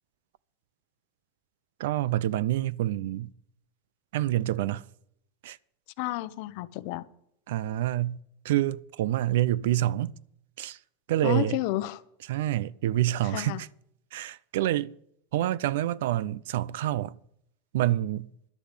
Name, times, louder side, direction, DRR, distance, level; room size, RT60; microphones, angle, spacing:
voice 1, 1.8-3.3 4.1-4.8 5.4-5.6 7.5-8.2 8.4-10.1 10.6-10.8 11.1-11.6 12.3-13.7 14.1-14.9 15.3-17.2 17.7-18.3, right 14 dB, 75° right, 0.5 m, -27 dB
voice 2, 6.0-7.0 11.2-12.0 13.3-13.6, left 17 dB, 55° left, 0.7 m, -31 dB
11.5 x 7.0 x 9.1 m
supercardioid pair, 155°, 0 cm